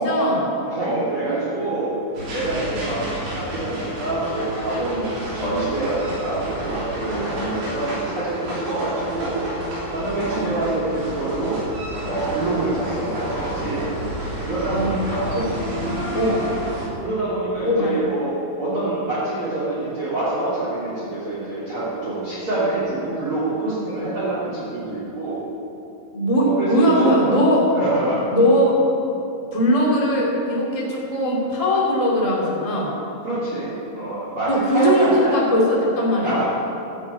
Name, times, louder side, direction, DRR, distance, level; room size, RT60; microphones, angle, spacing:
voice 1, 0.0-0.5 1.2-1.6 2.7-2.8 7.1-7.3 10.3-10.6 14.7-15.0 15.3-15.4 15.7-16.5 17.6-18.0 26.1-27.6 28.3-28.8 29.5-32.9 34.5-36.4, equal, 15° left, -4 dB, 1.4 m, -20 dB
voice 2, 0.6-1.9 2.3-9.4 9.9-11.6 12.0-13.9 14.4-15.4 17.0-25.4 26.4-27.2 27.7-28.3 33.2-35.3 36.2-36.5, right 2 dB, 35° right, -10 dB, 3.7 m, -26 dB
sound 1, 2.1-16.9, right 1 dB, 80° right, 5.5 m, -30 dB
12.5 x 9.0 x 8.4 m, 2.9 s
omnidirectional pair, 4.4 m